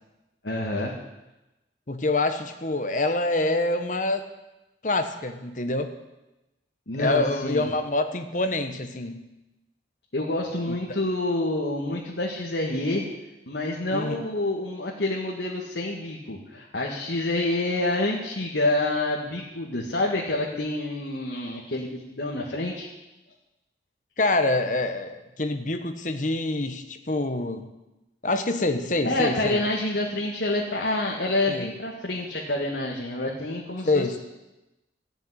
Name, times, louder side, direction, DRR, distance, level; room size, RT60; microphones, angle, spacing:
voice 1, 0.4-0.9 6.9-7.7 10.1-13.0 13.5-22.9 29.0-34.2, left 2 dB, 80° left, -3 dB, 1.9 m, -27 dB
voice 2, 1.9-4.3 4.8-5.9 7.0-9.2 10.7-10.8 13.9-14.1 24.2-27.7 28.2-29.6 31.5-31.7 33.8-34.2, left 2 dB, 45° left, 7 dB, 1.3 m, -26 dB
15.0 x 7.0 x 9.9 m, 0.99 s
head